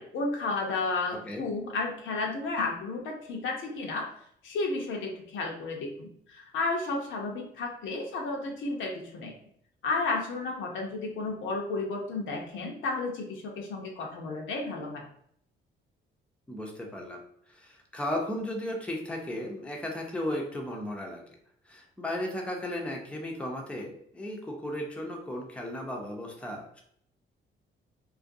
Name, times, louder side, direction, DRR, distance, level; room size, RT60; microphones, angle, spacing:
voice 1, 0.0-4.1 4.4-9.3 9.8-15.0, left 3 dB, 75° left, 0 dB, 0.6 m, -32 dB
voice 2, 16.5-17.2 17.5-21.2 21.7-26.8, left 1 dB, 5° left, 0 dB, 0.5 m, -35 dB
2.4 x 2.2 x 2.6 m, 0.66 s
cardioid pair, 90°, 20 cm